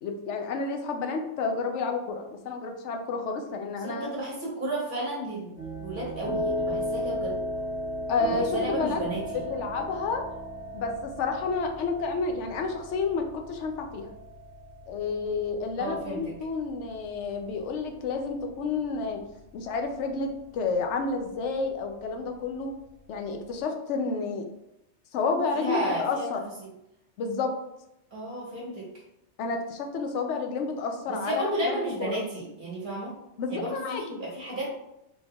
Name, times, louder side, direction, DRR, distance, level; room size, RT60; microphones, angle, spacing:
voice 1, 0.0-4.1 8.1-9.0 9.3-10.3 10.7-14.1 14.9-19.2 19.5-22.7 23.1-24.5 25.1-26.4 27.2-27.6 29.4-32.2 33.4-34.2, left 4 dB, 85° left, 4 dB, 0.9 m, -30 dB
voice 2, 3.8-5.5 5.8-7.4 8.3-9.4 15.8-16.3 25.5-26.3 26.6-26.7 28.1-28.9 31.1-33.2 33.5-34.7, right 1 dB, 45° right, -4 dB, 1.3 m, -32 dB
sound 1, 5.6-23.5, equal, 85° right, 1.3 m, -37 dB
4.1 x 3.4 x 2.3 m, 0.85 s
omnidirectional pair, 1.2 m